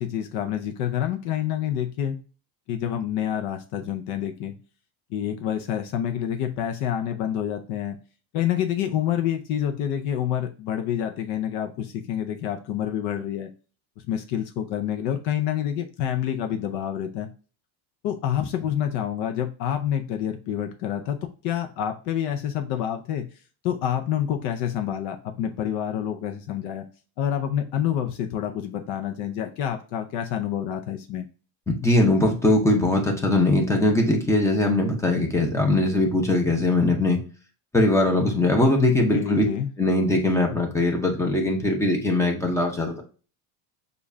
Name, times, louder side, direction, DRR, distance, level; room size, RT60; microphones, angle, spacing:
voice 1, 0.0-2.2 2.7-4.6 5.1-8.0 8.3-13.5 14.1-17.3 18.0-21.2 21.4-23.3 23.6-26.8 27.2-31.3 39.1-39.7, left 10 dB, 55° left, 5 dB, 0.6 m, -27 dB
voice 2, 31.7-37.2 37.7-39.4 39.8-43.0, left 2 dB, 5° left, 1 dB, 0.6 m, -21 dB
6.8 x 2.4 x 2.6 m, 0.36 s
cardioid pair, 170°, 46 cm